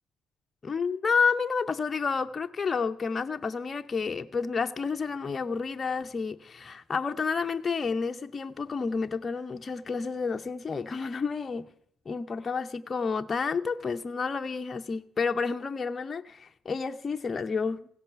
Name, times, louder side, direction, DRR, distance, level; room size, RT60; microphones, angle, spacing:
voice 1, 0.6-11.7 12.1-17.9, left 5 dB, 35° left, 0.7 m, -30 dB
16.0 x 10.5 x 6.7 m
cardioid pair, 90°, 0 cm